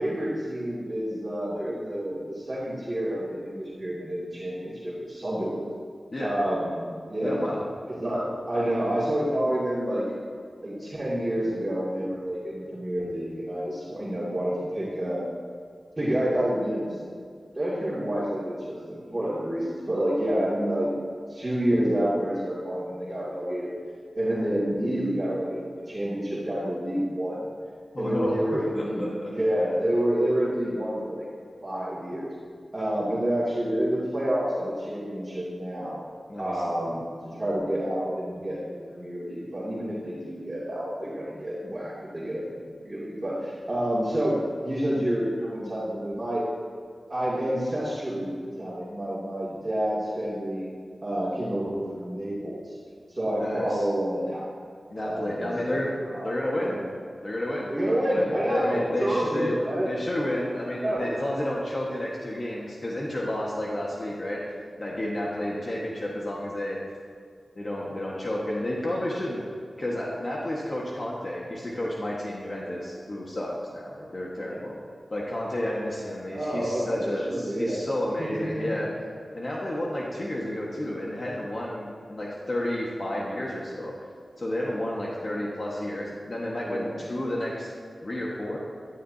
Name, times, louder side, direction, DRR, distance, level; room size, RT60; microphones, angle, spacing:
voice 1, 0.0-5.7 6.2-7.5 7.9-10.0 10.6-15.2 16.0-17.0 17.5-20.9 21.3-23.7 24.1-27.4 28.0-31.2 31.6-32.3 32.7-36.0 36.4-42.4 42.8-46.4 47.1-50.7 51.0-52.7 53.1-54.4 55.0-56.8 57.7-59.9 60.8-61.1 74.4-74.6 76.3-77.8 78.2-78.8 86.6-87.0, equal, 30° right, -9 dB, 2.6 m, -28 dB
voice 2, 7.2-7.6 27.9-29.3 36.3-36.6 53.4-53.9 54.9-56.0 56.2-56.8 57.2-57.7 58.1-59.6 59.8-66.8 67.5-69.4 69.8-74.7 75.1-78.9 79.3-83.9 84.4-87.7 88.0-88.6, left 1 dB, 45° left, -4 dB, 1.6 m, -31 dB
15.0 x 11.0 x 2.8 m, 2.2 s
wide cardioid pair, 65°, 0 cm